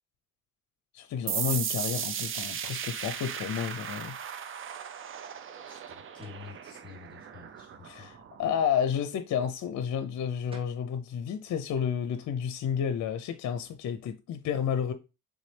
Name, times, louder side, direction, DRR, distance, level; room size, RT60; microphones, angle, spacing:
voice 1, 0.9-4.2 7.8-14.9, left 8 dB, 65° left, 0.6 m, -31 dB
sound 1, 1.3-8.6, right 8 dB, 45° right, 0.5 m, -36 dB
voice 2, 5.7-8.1, left 6 dB, 15° left, 2.6 m, -49 dB
sound 2, 6.2-6.5 10.2-10.3 10.5-10.9, right 3 dB, 20° right, 1.2 m, -51 dB
4.0 x 3.6 x 3.3 m
cardioid pair, 90°, 30 cm